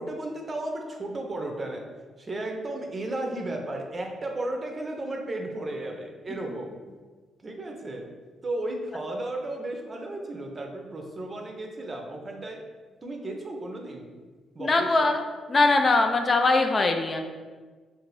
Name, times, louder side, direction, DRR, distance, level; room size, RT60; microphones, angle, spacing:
voice 1, 0.0-1.9 2.2-6.7 7.4-8.1 8.4-12.6 13.0-14.2 14.5-15.2, right 1 dB, 35° right, 2 dB, 0.5 m, -34 dB
voice 2, 14.6-15.2 15.5-17.2, left 3 dB, 40° left, 4 dB, 0.3 m, -21 dB
2.5 x 2.5 x 3.2 m, 1.4 s
supercardioid pair, 60°, 0 cm